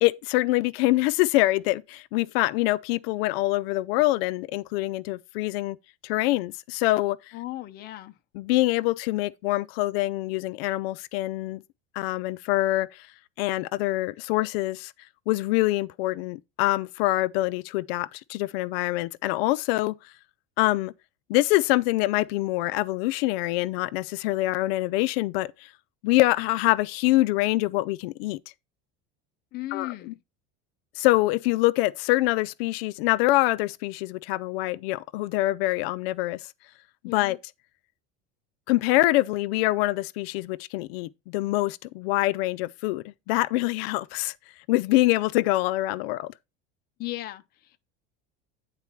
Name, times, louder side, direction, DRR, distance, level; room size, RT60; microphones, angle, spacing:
voice 1, 0.0-5.8 6.0-7.2 8.3-11.6 11.9-13.1 13.4-14.9 15.3-20.1 20.6-20.9 21.3-25.7 26.0-28.4 29.7-29.9 31.0-36.5 37.1-37.4 38.7-44.3 44.7-46.3, left 18 dB, 85° left, 0.5 m, -25 dB
voice 2, 7.3-8.1 29.5-30.2 37.0-37.4 47.0-47.8, left 16 dB, 35° left, 0.6 m, -36 dB
9.8 x 4.1 x 4.4 m
cardioid pair, 160°, 29 cm